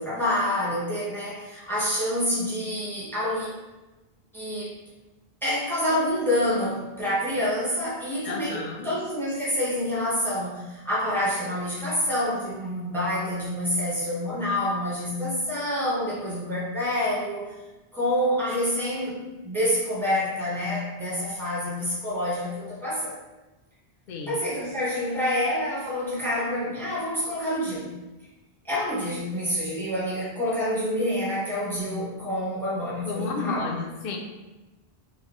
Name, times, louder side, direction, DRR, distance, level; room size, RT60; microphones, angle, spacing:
voice 1, 0.0-3.5 4.3-4.7 5.4-17.5 17.9-23.1 24.3-27.9 28.6-33.8, left 1 dB, ahead, -8 dB, 1.0 m, -27 dB
voice 2, 8.2-8.9 24.1-24.4 33.1-34.2, left 3 dB, 65° left, 3 dB, 0.7 m, -32 dB
4.0 x 2.3 x 3.0 m, 1.1 s
omnidirectional pair, 1.0 m